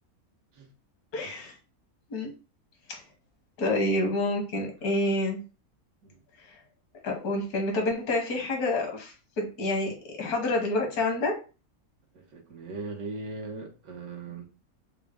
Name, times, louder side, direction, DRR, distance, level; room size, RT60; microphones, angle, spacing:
voice 1, 1.1-1.5 2.1-2.3 2.9-3.0 3.6-5.4 6.5-6.6 7.0-11.4, left 2 dB, 85° left, 1.6 m, -28 dB
voice 2, 12.1-14.4, right 3 dB, 80° right, 1.4 m, -39 dB
4.2 x 2.0 x 3.5 m
omnidirectional pair, 1.6 m